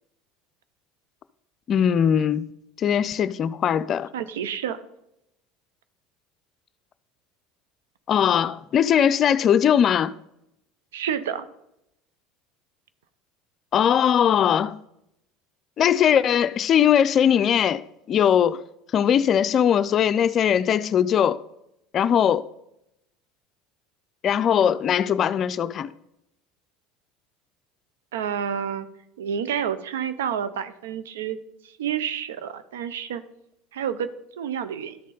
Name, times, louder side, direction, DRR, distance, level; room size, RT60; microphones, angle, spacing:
voice 1, 1.7-2.5 2.8-4.1 8.1-10.1 13.7-14.7 15.8-18.6 18.9-21.4 21.9-22.5 24.2-25.9, left 9 dB, 45° left, 0.4 m, -20 dB
voice 2, 4.1-4.8 10.9-11.5 28.1-28.9 29.2-31.4 31.6-33.2 33.7-35.0, right 8 dB, 85° right, 0.5 m, -29 dB
12.5 x 4.2 x 3.9 m
hypercardioid pair, 85°, 0 cm